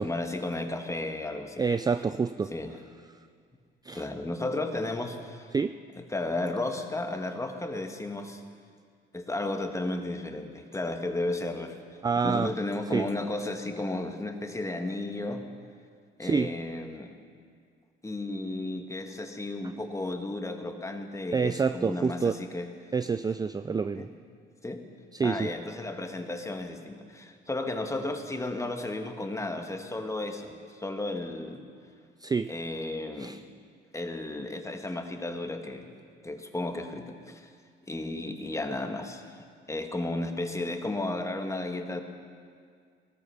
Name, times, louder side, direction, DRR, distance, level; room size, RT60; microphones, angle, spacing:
voice 1, 0.0-1.6 2.5-2.7 3.9-5.5 6.0-8.4 9.1-11.8 12.2-15.4 16.2-17.1 18.0-22.7 23.9-24.1 24.6-24.8 25.2-31.6 32.5-33.4 33.9-35.9 36.2-37.5 37.9-42.0, left 2 dB, 15° left, 5 dB, 1.5 m, -33 dB
voice 2, 1.6-2.5 3.8-4.1 5.5-5.8 12.0-12.5 12.9-13.1 16.2-16.5 21.3-22.4 22.9-24.1 25.1-25.5 32.2-32.5 33.2-33.4, right 5 dB, 20° right, 11 dB, 0.3 m, -27 dB
18.0 x 13.5 x 5.7 m, 2.1 s
cardioid pair, 90°, 20 cm